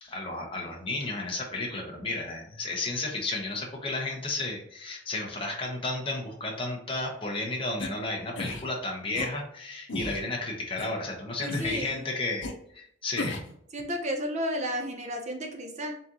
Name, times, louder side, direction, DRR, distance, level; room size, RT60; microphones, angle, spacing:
voice 1, 0.0-13.4, left 2 dB, 30° left, 0 dB, 0.9 m, -33 dB
sound 1, 7.8-7.9 8.4-8.6 9.1-9.3 9.9-10.2 10.8-10.9 11.5-11.9 12.4-12.5 13.2-13.5, left 2 dB, 80° left, 0.8 m, -34 dB
voice 2, 11.4-12.0 13.7-15.9, equal, 40° right, 3 dB, 0.6 m, -32 dB
4.1 x 3.7 x 2.8 m, 0.69 s
head